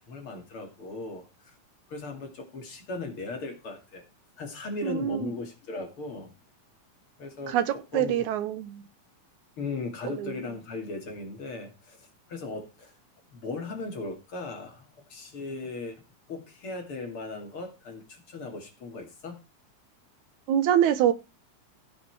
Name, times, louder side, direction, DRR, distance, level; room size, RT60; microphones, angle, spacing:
voice 1, 0.1-1.3 1.9-4.0 4.4-6.3 7.2-7.5 7.9-8.1 9.6-12.9 13.3-16.0 16.3-19.4, left 3 dB, 45° left, 4 dB, 3.2 m, -37 dB
voice 2, 4.8-5.3 7.5-8.8 10.0-10.4 20.5-21.1, right 10 dB, 80° right, 13 dB, 2.3 m, -25 dB
16.0 x 6.4 x 4.7 m, 0.27 s
omnidirectional pair, 3.5 m